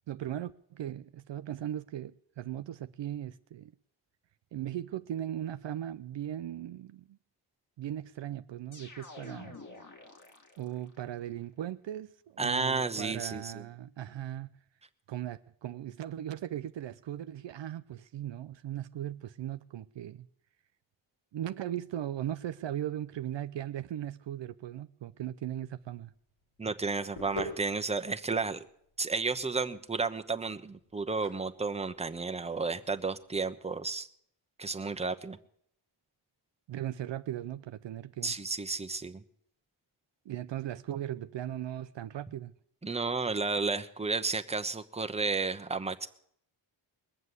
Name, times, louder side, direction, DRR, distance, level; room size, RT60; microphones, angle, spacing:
voice 1, 0.1-3.7 4.5-7.2 7.8-9.6 10.6-14.5 15.1-20.3 21.3-26.1 36.7-38.3 40.3-42.5, right 11 dB, 60° right, 0.6 m, -38 dB
sound 1, 8.7-11.0, left 3 dB, 35° left, 2.1 m, -49 dB
voice 2, 12.4-13.6 26.6-28.6 29.0-34.1 34.6-35.4 38.2-39.2 42.8-46.1, right 4 dB, 15° right, 0.9 m, -32 dB
sound 2, 25.8-33.7, left 1 dB, 70° left, 5.2 m, -47 dB
20.5 x 7.4 x 8.1 m
cardioid pair, 80°, 49 cm